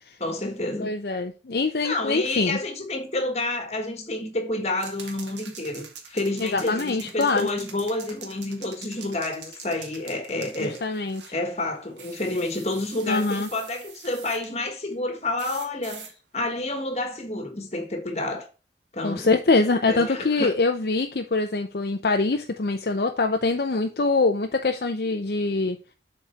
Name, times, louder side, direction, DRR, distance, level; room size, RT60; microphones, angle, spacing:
voice 1, 0.2-0.9 1.8-11.0 11.3-16.1 16.3-18.5 18.9-19.4 19.9-20.6, left 2 dB, 35° left, 1.5 m, -29 dB
voice 2, 0.8-2.6 6.4-7.5 10.6-11.3 13.1-13.5 19.0-25.8, left 3 dB, 55° left, 0.6 m, -24 dB
sound 1, 4.8-11.4 12.0-14.5 15.4-16.1, right 6 dB, 80° right, 1.7 m, -44 dB
7.5 x 4.3 x 4.5 m
head